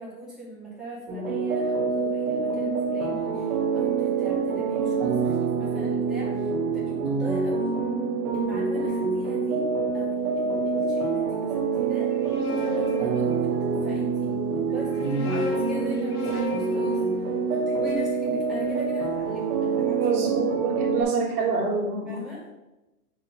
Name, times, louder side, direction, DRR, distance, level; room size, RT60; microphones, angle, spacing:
voice 1, 0.0-7.8 8.3-9.7 9.9-12.1 12.5-13.5 13.8-17.0 17.5-20.0 22.1-22.4, right 1 dB, ahead, -9 dB, 2.3 m, -40 dB
sound 1, 1.1-21.0, right 5 dB, 45° right, 1.6 m, -26 dB
sound 2, 12.0-13.9 14.7-18.9, left 4 dB, 85° left, 1.8 m, -37 dB
voice 2, 20.0-22.2, right 3 dB, 85° right, -5 dB, 2.0 m, -27 dB
6.6 x 4.6 x 5.3 m, 1.0 s
supercardioid pair, 160°, 44 cm